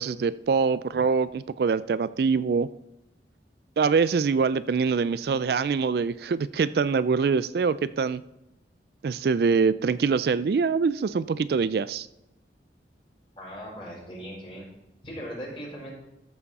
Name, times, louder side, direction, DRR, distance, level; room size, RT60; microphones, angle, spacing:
voice 1, 0.0-2.7 3.8-8.2 9.0-12.1, right 5 dB, 60° right, 16 dB, 0.3 m, -24 dB
voice 2, 13.4-14.6 15.0-15.9, equal, 30° left, -4 dB, 4.4 m, -39 dB
14.0 x 7.1 x 4.2 m, 0.90 s
head